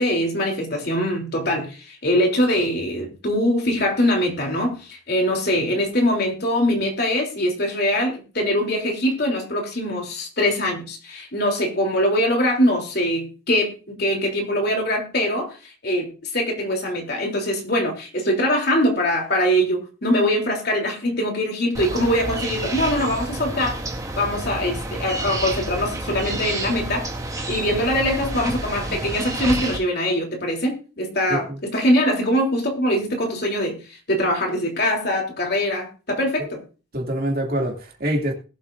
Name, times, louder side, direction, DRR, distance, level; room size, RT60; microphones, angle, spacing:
voice 1, 0.0-15.6 15.8-23.8 24.2-27.1 27.5-33.8 34.1-36.6, equal, 50° left, 3.3 m, -22 dB
sound 1, 21.7-29.8, right 2 dB, 15° right, 1.7 m, -29 dB
voice 2, 36.9-38.3, right 1 dB, 45° right, 2.6 m, -25 dB
21.0 x 8.1 x 2.6 m
head